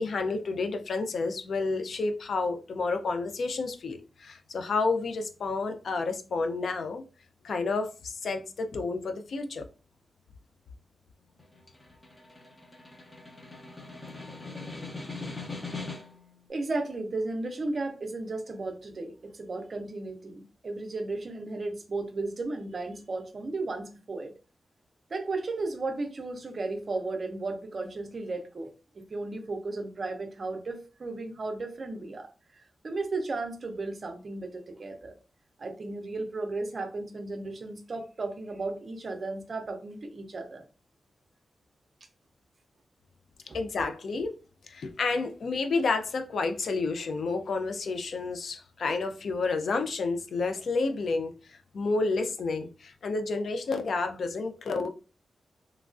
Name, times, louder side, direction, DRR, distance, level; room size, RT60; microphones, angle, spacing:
voice 1, 0.0-7.0 7.4-9.7 43.5-44.4 44.7-54.9, left 3 dB, 65° left, 0.4 m, -30 dB
Snare drum, 11.4-16.3, left 3 dB, 25° left, 0.7 m, -41 dB
voice 2, 16.5-24.3 25.1-35.2 35.6-40.6 43.5-43.6, right 3 dB, 45° right, 0.5 m, -35 dB
3.0 x 2.3 x 2.5 m
wide cardioid pair, 125°, 0 cm